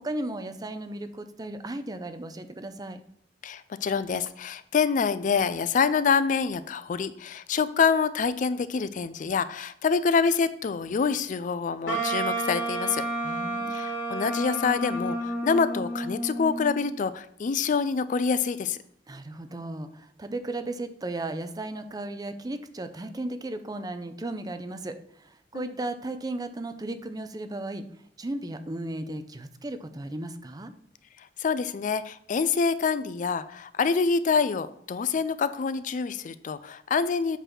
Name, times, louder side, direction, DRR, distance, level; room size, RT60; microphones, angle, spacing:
voice 1, 0.0-3.0 13.2-13.8 19.1-27.9 28.2-30.7, right 2 dB, 20° right, 9 dB, 0.5 m, -35 dB
voice 2, 3.4-13.0 13.7-18.8 25.5-25.7 31.2-37.4, left 5 dB, 45° left, 14 dB, 0.4 m, -26 dB
Wind instrument woodwind instrument, 11.9-16.9, right 2 dB, 85° left, 2.9 m, -30 dB
8.1 x 4.0 x 5.9 m, 0.68 s
head